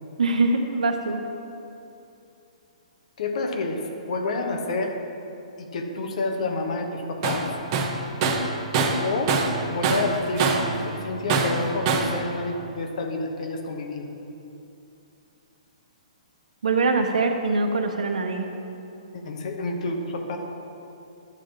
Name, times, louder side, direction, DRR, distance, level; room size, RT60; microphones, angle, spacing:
voice 1, 0.2-1.2 16.6-18.5, right 3 dB, 75° right, 4 dB, 0.9 m, -23 dB
voice 2, 3.2-5.0 5.6-7.5 9.0-9.4 9.7-14.1 19.1-20.4, left 2 dB, 60° left, 3 dB, 1.1 m, -29 dB
Tools, 7.2-7.4 7.7-9.6 9.8-10.7 11.3-12.2, right 4 dB, 40° right, 0.9 m, -23 dB
10.5 x 3.7 x 7.1 m, 2.7 s
hypercardioid pair, 130°, 4 cm